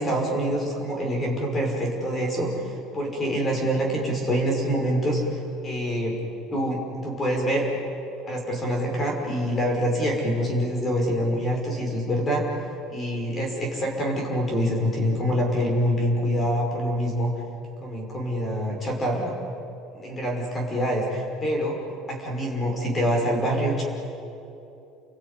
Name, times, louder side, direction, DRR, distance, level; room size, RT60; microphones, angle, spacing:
voice 1, 0.0-6.2 6.5-7.7 8.2-12.5 12.9-17.3 17.8-19.3 19.9-21.8 22.1-23.8, equal, 20° left, 1 dB, 5.2 m, -25 dB
29.5 x 20.5 x 9.8 m, 2.8 s
cardioid pair, 165°, 0 cm